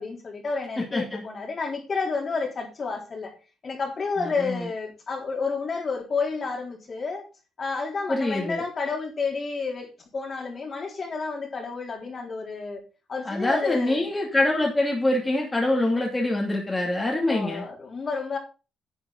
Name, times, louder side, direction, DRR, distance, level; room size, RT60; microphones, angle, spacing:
voice 1, 0.0-3.3 3.6-7.3 7.6-12.8 13.1-14.1 17.3-18.4, left 4 dB, 40° left, 3.8 m, -30 dB
voice 2, 4.2-4.7 8.1-8.6 13.2-17.6, left 1 dB, 20° left, 2.8 m, -25 dB
11.0 x 7.8 x 4.0 m
cardioid pair, 90°, 0 cm